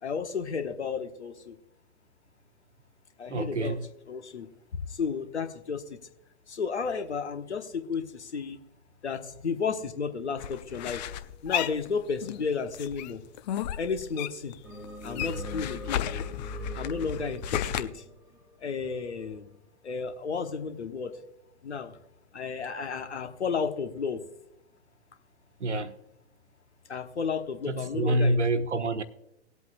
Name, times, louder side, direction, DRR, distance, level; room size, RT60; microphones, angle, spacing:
voice 1, 0.0-1.5 3.2-3.8 4.1-4.5 4.9-5.8 6.5-8.6 9.0-11.0 11.4-13.2 13.8-14.5 15.0-16.0 16.7-18.0 18.6-19.5 19.8-21.1 21.6-21.9 22.3-24.2 26.9-28.4, left 5 dB, 75° left, 1.2 m, -32 dB
voice 2, 3.3-3.8 25.6-25.9 27.7-29.0, right 1 dB, 80° right, 1.0 m, -27 dB
sound 1, 10.4-12.4 12.7-14.6 14.8-17.8, left 11 dB, 40° left, 0.6 m, -34 dB
sound 2, 14.6-19.0, equal, 5° right, 1.3 m, -40 dB
19.5 x 8.2 x 2.5 m
figure-of-eight pair, 100°, 34 cm